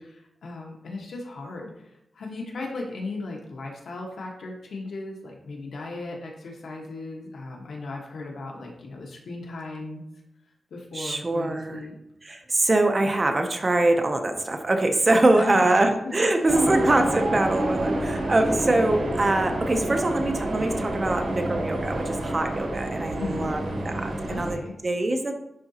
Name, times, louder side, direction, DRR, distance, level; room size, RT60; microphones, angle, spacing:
voice 1, 0.4-10.0 10.7-11.9 15.4-15.8 16.3-16.5 23.2-23.6 24.3-24.7, left 3 dB, 75° left, 0 dB, 1.2 m, -36 dB
voice 2, 10.9-11.8 12.2-25.3, right 2 dB, 30° right, 5 dB, 0.6 m, -23 dB
sound 1, 16.5-24.5, right 1 dB, 80° right, 1.4 m, -28 dB
10.5 x 3.9 x 2.8 m, 0.83 s
wide cardioid pair, 155°, 0 cm